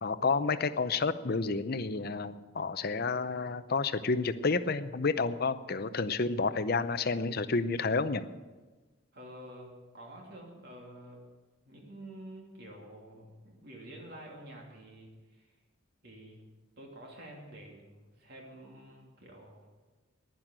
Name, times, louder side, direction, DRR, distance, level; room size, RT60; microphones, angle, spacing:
voice 1, 0.0-8.2, left 4 dB, 45° left, 12 dB, 0.6 m, -30 dB
voice 2, 9.1-11.2 11.7-15.5 16.0-16.4 16.8-19.7, right 1 dB, 50° right, -1 dB, 2.8 m, -49 dB
11.0 x 10.5 x 8.8 m, 1.2 s
head